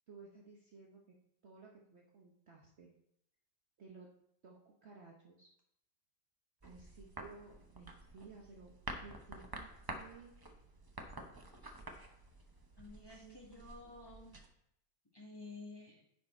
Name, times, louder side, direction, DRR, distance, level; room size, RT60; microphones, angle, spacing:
voice 1, 0.1-1.2 1.4-2.9 3.8-4.1 4.4-5.5 6.6-8.7 9.0-10.3 13.2-14.0, right 4 dB, 50° right, -1 dB, 1.0 m, -56 dB
sound 1, 6.6-14.5, right 2 dB, 30° right, 0.4 m, -50 dB
voice 2, 12.8-14.4 15.1-16.0, left 2 dB, 15° left, -2 dB, 1.3 m, -52 dB
9.9 x 4.8 x 4.3 m, 0.76 s
omnidirectional pair, 1.7 m